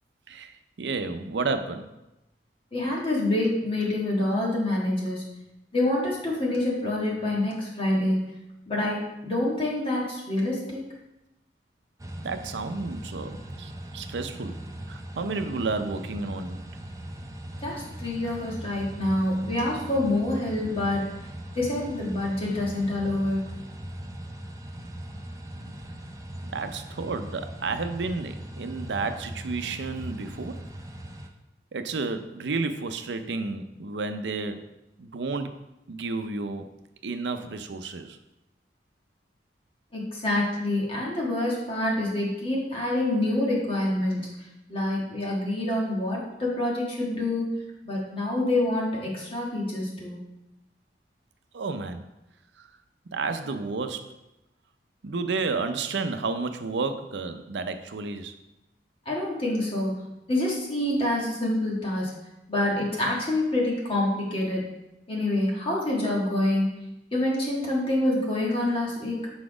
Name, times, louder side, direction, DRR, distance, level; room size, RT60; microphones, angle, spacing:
voice 1, 0.3-1.9 12.2-14.6 14.9-16.6 25.7-25.8 26.5-30.6 31.7-34.7 35.0-35.5 35.9-36.7 37.0-38.2 51.5-52.0 52.6-52.7 53.1-54.1 55.0-58.3, right 3 dB, 80° right, 9 dB, 0.5 m, -31 dB
voice 2, 2.7-5.2 5.7-8.3 8.7-10.8 17.6-21.1 21.5-23.4 39.9-44.3 44.7-47.5 47.8-50.2 59.0-62.1 62.5-64.6 65.1-66.7 67.1-69.3, left 1 dB, 30° left, -4 dB, 1.5 m, -26 dB
sound 1, 12.0-31.3, right 1 dB, 20° right, 0.4 m, -40 dB
5.8 x 4.1 x 4.9 m, 0.94 s
head